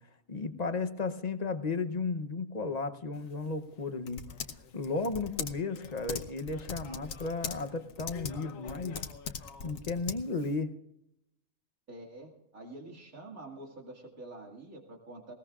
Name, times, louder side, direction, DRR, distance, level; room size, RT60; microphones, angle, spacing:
voice 1, 0.3-4.2 4.7-9.0 9.6-10.7, left 3 dB, 35° left, 10 dB, 0.8 m, -34 dB
Typing, 3.1-10.6, left 6 dB, 75° left, 1.3 m, -42 dB
voice 2, 11.9-15.3, right 2 dB, 85° right, -1 dB, 2.7 m, -47 dB
20.0 x 19.0 x 2.4 m, 0.83 s
omnidirectional pair, 1.4 m